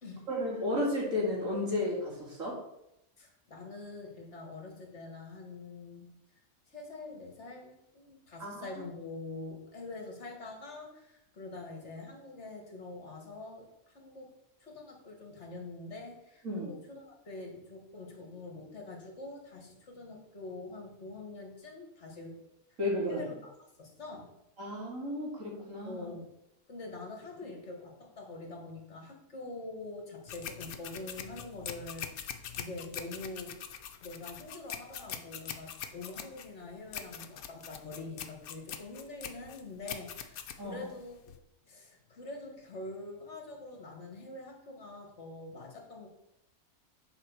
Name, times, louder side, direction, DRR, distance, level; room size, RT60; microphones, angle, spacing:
voice 1, 0.3-2.6 8.4-8.7 16.4-16.8 22.8-23.2 24.6-26.1 40.6-40.8, left 1 dB, 65° right, -3 dB, 2.8 m, -33 dB
voice 2, 3.2-6.1 6.7-14.3 14.6-22.4 22.7-22.8 23.1-23.5 23.8-24.3 25.8-26.3 26.7-33.6 34.0-41.2 41.7-46.1, left 2 dB, 55° left, 1 dB, 2.1 m, -45 dB
sound 1, 30.3-41.4, left 8 dB, 85° left, 1.2 m, -43 dB
7.2 x 4.8 x 6.8 m, 0.83 s
omnidirectional pair, 1.5 m